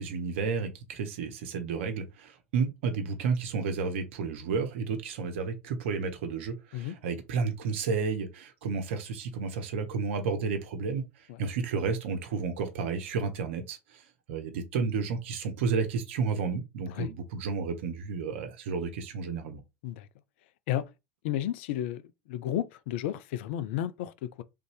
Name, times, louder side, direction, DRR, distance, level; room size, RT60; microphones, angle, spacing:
voice 1, 0.0-11.0 11.4-14.0 14.3-19.6, right 5 dB, 60° right, 0.9 m, -31 dB
voice 2, 21.2-24.4, left 12 dB, 55° left, 0.4 m, -33 dB
3.4 x 2.6 x 3.2 m
figure-of-eight pair, 80°, 7 cm